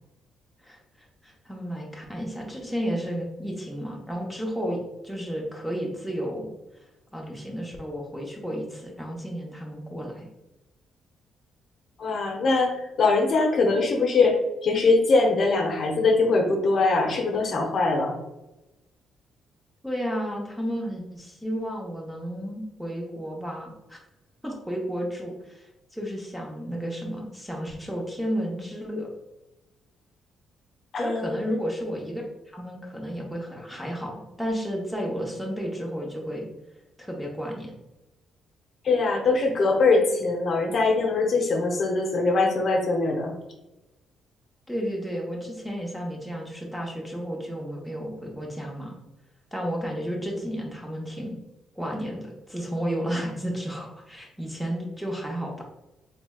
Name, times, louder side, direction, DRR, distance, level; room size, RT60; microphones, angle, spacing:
voice 1, 0.6-6.5 7.1-10.3 19.8-24.0 24.4-29.1 31.0-32.2 32.5-36.5 37.0-37.7 44.7-48.9 49.5-51.4 51.8-55.6, equal, ahead, -1 dB, 0.8 m, -32 dB
voice 2, 12.0-18.2 30.9-31.3 38.8-43.3, left 3 dB, 55° left, 0 dB, 0.7 m, -22 dB
3.2 x 3.2 x 2.3 m, 0.97 s
cardioid pair, 90°, 0 cm